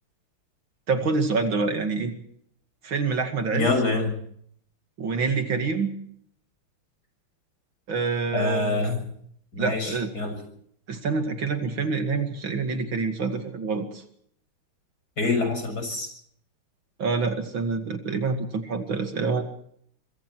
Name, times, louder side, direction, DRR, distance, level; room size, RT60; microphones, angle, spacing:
voice 1, 0.9-2.1 2.8-3.7 5.0-5.9 7.9-8.8 9.6-10.1 10.9-14.0 17.0-19.4, right 4 dB, 65° right, 6 dB, 2.9 m, -26 dB
voice 2, 3.5-4.1 8.3-9.0 9.5-10.4 15.2-16.1, left 3 dB, 45° left, 6 dB, 6.9 m, -25 dB
25.5 x 23.5 x 4.7 m, 0.66 s
omnidirectional pair, 2.4 m